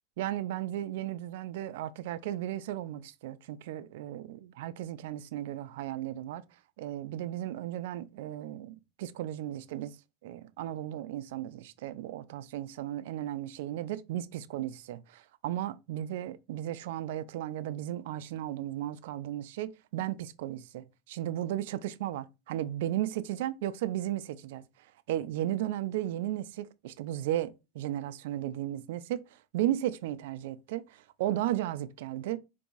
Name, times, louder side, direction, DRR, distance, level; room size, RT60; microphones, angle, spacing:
voice 1, 0.2-6.5 6.8-10.0 10.2-32.4, right 13 dB, 75° right, 0.3 m, -35 dB
3.9 x 2.6 x 2.3 m
supercardioid pair, 145°, 0 cm